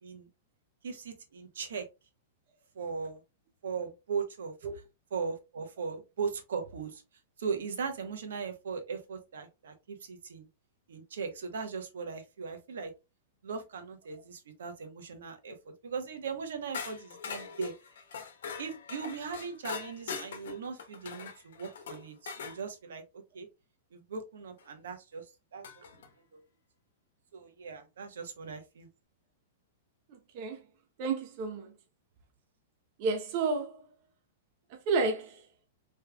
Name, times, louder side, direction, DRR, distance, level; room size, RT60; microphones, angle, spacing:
voice 1, 0.8-1.9 2.7-3.2 3.6-4.5 5.1-7.0 7.4-10.5 10.9-12.9 13.4-17.7 18.6-23.0 23.3-23.5 23.9-25.2 25.5-25.9 26.3-26.4 27.3-28.9, right 5 dB, 85° right, 1.1 m, -38 dB
sound 1, 16.7-22.6 24.6-24.7 25.6-26.1, left 6 dB, 70° left, 1.0 m, -42 dB
voice 2, 31.0-31.6 33.0-33.8 34.9-35.3, right 4 dB, 30° right, 0.6 m, -30 dB
3.5 x 3.2 x 2.2 m
supercardioid pair, 175°, 0 cm